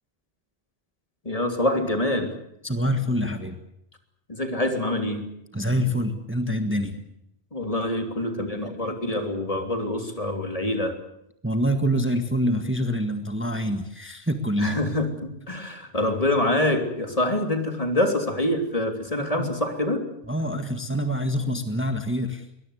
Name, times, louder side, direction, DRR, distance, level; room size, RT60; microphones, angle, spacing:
voice 1, 1.2-2.3 4.3-5.3 7.5-11.0 14.6-20.1, left 1 dB, 35° left, 5 dB, 3.2 m, -25 dB
voice 2, 2.6-3.5 5.5-7.0 11.4-14.7 19.2-19.5 20.3-22.5, equal, 10° right, 7 dB, 1.6 m, -26 dB
22.5 x 20.0 x 8.1 m, 0.79 s
omnidirectional pair, 1.1 m